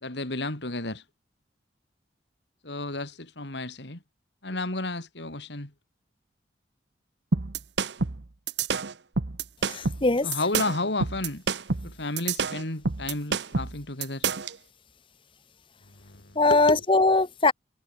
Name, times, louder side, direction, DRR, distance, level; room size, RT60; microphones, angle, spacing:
voice 1, 0.0-1.0 2.6-4.0 4.4-5.7 10.2-11.4 11.8-14.3 16.0-16.8, left 2 dB, 70° left, 2.8 m, -32 dB
sound 1, 7.3-14.6, right 4 dB, 70° right, 1.0 m, -28 dB
voice 2, 9.7-10.3 16.4-17.5, left 3 dB, 30° left, 0.9 m, -21 dB
head